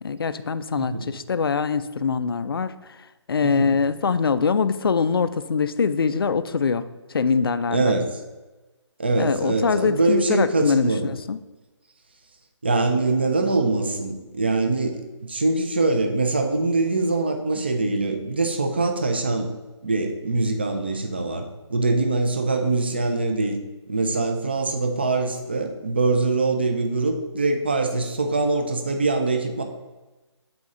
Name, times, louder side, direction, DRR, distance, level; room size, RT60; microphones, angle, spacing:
voice 1, 0.0-3.0 3.3-7.9 9.2-10.9 11.3-11.4, left 5 dB, 50° left, 13 dB, 0.4 m, -23 dB
voice 2, 3.4-3.7 7.7-8.1 9.0-11.1 12.6-19.5 19.8-23.6 23.9-29.6, right 3 dB, 20° right, 5 dB, 0.4 m, -23 dB
7.8 x 4.2 x 3.6 m, 1.2 s
hypercardioid pair, 170°, 15 cm